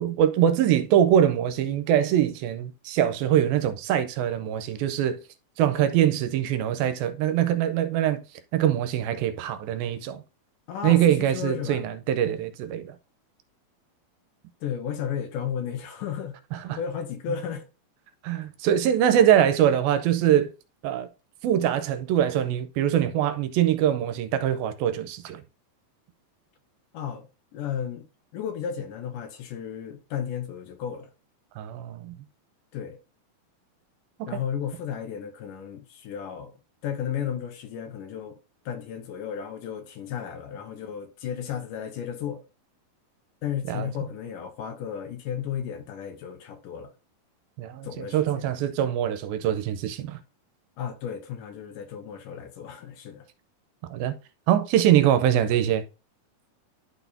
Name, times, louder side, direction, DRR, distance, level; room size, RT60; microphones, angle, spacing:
voice 1, 0.0-5.2 5.6-8.2 8.5-10.2 10.8-13.0 16.5-16.8 18.2-20.5 20.8-21.1 21.4-25.4 31.6-32.1 34.2-34.4 43.7-43.9 47.6-50.2 53.9-54.1 54.5-55.8, right 10 dB, 85° right, 2.5 m, -23 dB
voice 2, 10.7-11.8 14.6-16.3 16.8-17.7 26.9-27.3 27.5-28.1 28.3-31.1 32.7-33.0 34.3-36.5 36.8-38.4 38.7-42.4 43.4-46.9 47.8-48.5 50.8-53.3, left 8 dB, 70° left, 2.3 m, -33 dB
11.5 x 4.1 x 2.7 m
omnidirectional pair, 4.2 m